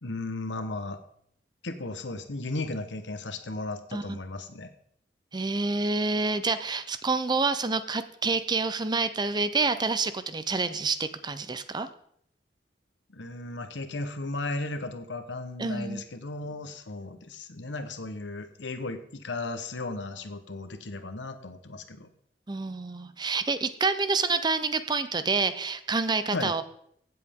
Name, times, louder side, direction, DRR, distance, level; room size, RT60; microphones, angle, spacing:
voice 1, 0.0-1.0 1.6-4.7 13.1-22.1 26.3-26.6, left 2 dB, 90° left, 9 dB, 1.1 m, -35 dB
voice 2, 5.3-11.9 15.6-16.0 22.5-26.6, right 4 dB, 25° right, 12 dB, 0.6 m, -28 dB
16.0 x 7.7 x 3.7 m, 0.68 s
head